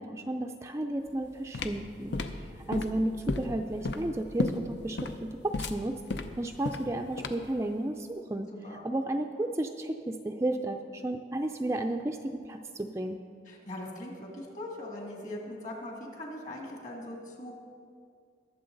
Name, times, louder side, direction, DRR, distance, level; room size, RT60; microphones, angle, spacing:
voice 1, 0.0-6.0 6.4-8.5 8.8-13.2, right 1 dB, 15° right, 4 dB, 0.4 m, -33 dB
sound 1, 1.1-7.6, left 3 dB, 75° left, 0.7 m, -34 dB
voice 2, 13.5-17.5, left 1 dB, 45° left, 0 dB, 2.2 m, -41 dB
20.5 x 7.3 x 3.9 m, 2.2 s
head